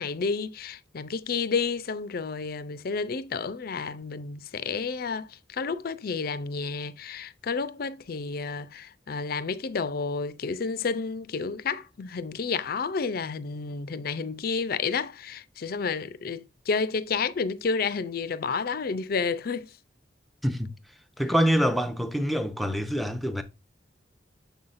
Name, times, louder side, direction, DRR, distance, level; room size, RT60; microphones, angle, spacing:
voice 1, 0.0-19.7, left 5 dB, 50° left, 0.4 m, -30 dB
voice 2, 20.4-20.7 21.2-23.4, equal, ahead, 0.6 m, -25 dB
7.2 x 5.5 x 2.5 m
head